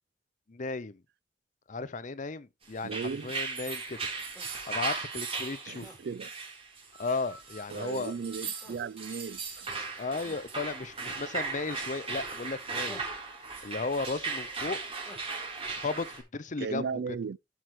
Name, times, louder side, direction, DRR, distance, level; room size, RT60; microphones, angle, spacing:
voice 1, 0.5-1.0 1.7-4.0 4.7-5.9 7.0-8.1 10.0-13.0 13.6-14.8 15.8-17.2, left 3 dB, 45° left, 0.7 m, -35 dB
sound 1, 2.8-16.2, right 4 dB, 35° right, 3.4 m, -37 dB
voice 2, 2.8-3.3 5.7-6.3 7.7-9.7 16.6-17.4, right 5 dB, 60° right, 0.4 m, -36 dB
sound 2, 4.3-4.6 5.8-6.0 8.6-8.9 10.2-10.4 12.9-13.2 15.0-15.3, left 1 dB, 5° left, 4.5 m, -48 dB
sound 3, 6.8-11.3 12.2-12.3, right 1 dB, 85° left, 3.6 m, -56 dB
12.5 x 6.0 x 3.1 m
head